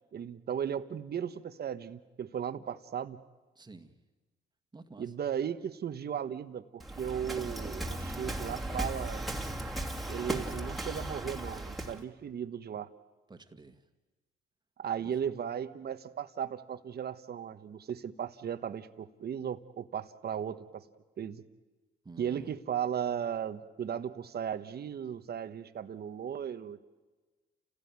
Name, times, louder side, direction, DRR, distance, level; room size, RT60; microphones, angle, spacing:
voice 1, 0.1-3.2 5.0-9.2 10.1-12.9 14.8-20.8 21.2-21.4 22.2-26.8, right 8 dB, 55° right, 11 dB, 1.3 m, -36 dB
voice 2, 3.6-3.9 4.7-5.1 10.2-10.5 13.3-13.8 15.1-15.2 22.0-22.5, right 3 dB, 20° right, 6 dB, 2.0 m, -51 dB
Waves surf, 6.8-12.0, right 1 dB, ahead, 2.7 m, -37 dB
30.0 x 17.0 x 9.6 m, 1.3 s
cardioid pair, 90°, 20 cm